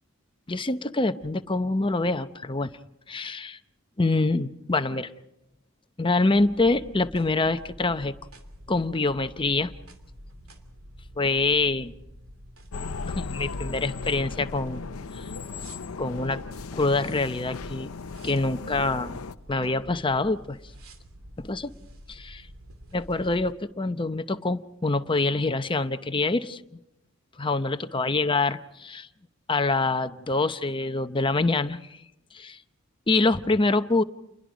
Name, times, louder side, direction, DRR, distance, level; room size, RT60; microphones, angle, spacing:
voice 1, 0.5-2.7 3.1-3.6 4.0-5.1 6.0-8.1 8.7-9.7 11.2-11.9 13.0-14.8 15.1-15.3 16.0-16.4 16.7-17.9 18.2-19.2 19.5-20.6 21.4-21.7 22.1-22.5 22.9-26.8 27.4-29.1 29.5-32.0 32.3-32.6 33.1-34.0, left 3 dB, 25° left, 11 dB, 0.7 m, -25 dB
sound 1, 6.3-23.5, equal, 75° right, 2.9 m, -47 dB
sound 2, 12.7-19.3, left 4 dB, 75° left, 0.7 m, -36 dB
29.0 x 22.0 x 5.1 m, 0.85 s
head